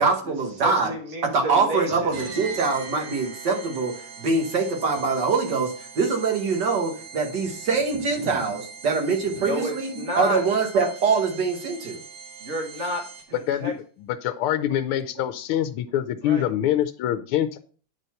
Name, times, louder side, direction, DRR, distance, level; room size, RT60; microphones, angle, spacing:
voice 1, 0.0-0.9 1.3-12.0, right 4 dB, 55° right, 2 dB, 1.8 m, -24 dB
voice 2, 0.6-2.2 8.2-8.3 9.4-10.4 12.4-13.0 13.3-13.7 16.2-16.5, right 1 dB, 40° right, 1 dB, 1.3 m, -30 dB
sound 1, 2.1-13.5, right 5 dB, 75° right, 2.3 m, -42 dB
voice 3, 14.2-17.6, left 11 dB, 80° left, 9 dB, 1.4 m, -25 dB
9.4 x 4.0 x 5.6 m, 0.43 s
omnidirectional pair, 2.4 m